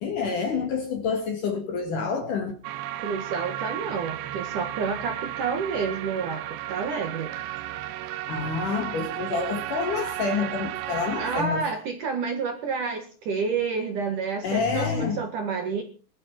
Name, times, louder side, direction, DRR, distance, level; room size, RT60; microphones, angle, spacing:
voice 1, 0.0-2.6 8.3-11.7 14.4-15.2, left 5 dB, 55° left, 2.6 m, -28 dB
sound 1, 2.6-11.4, right 13 dB, 75° right, 2.7 m, -34 dB
voice 2, 3.0-7.3 11.2-15.8, right 5 dB, 55° right, 2.5 m, -29 dB
21.0 x 13.0 x 4.4 m
omnidirectional pair, 5.6 m